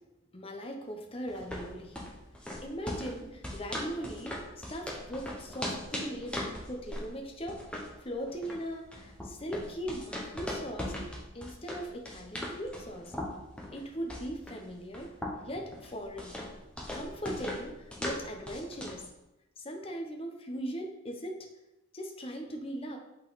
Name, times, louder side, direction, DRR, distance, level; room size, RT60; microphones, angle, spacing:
voice 1, 0.3-2.0 2.6-7.6 8.0-11.0 11.3-13.2 13.7-15.1 15.4-16.4 16.9-19.1 19.6-21.5 21.9-23.0, equal, 30° left, 3 dB, 0.8 m, -39 dB
sound 1, 1.3-19.1, left 1 dB, 5° left, 1.0 m, -40 dB
8.1 x 4.0 x 4.0 m, 0.94 s
head